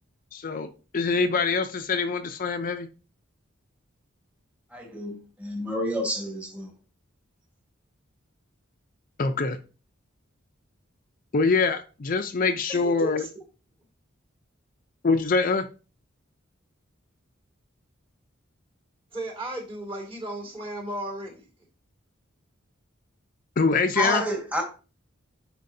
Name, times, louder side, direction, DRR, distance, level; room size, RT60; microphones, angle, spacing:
voice 1, 0.3-2.9 9.2-9.6 11.3-13.2 15.0-15.7 23.6-24.2, left 4 dB, 45° left, 0.5 m, -24 dB
voice 2, 4.7-6.7 24.0-24.6, equal, 5° right, 1.6 m, -29 dB
voice 3, 12.7-13.3 19.1-21.5, right 1 dB, 25° right, 2.2 m, -35 dB
9.3 x 4.6 x 2.7 m
head